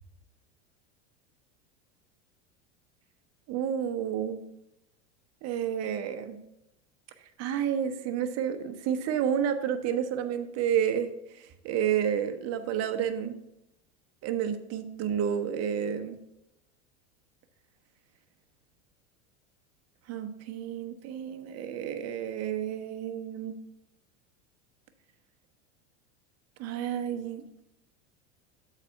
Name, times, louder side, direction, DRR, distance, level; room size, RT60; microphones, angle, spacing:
voice 1, 3.5-4.4 5.4-6.4 7.4-13.4 14.2-16.2 20.1-23.6 26.6-27.4, right 9 dB, 45° right, 7 dB, 0.8 m, -30 dB
8.0 x 4.1 x 5.5 m, 0.88 s
supercardioid pair, 110°, 35 cm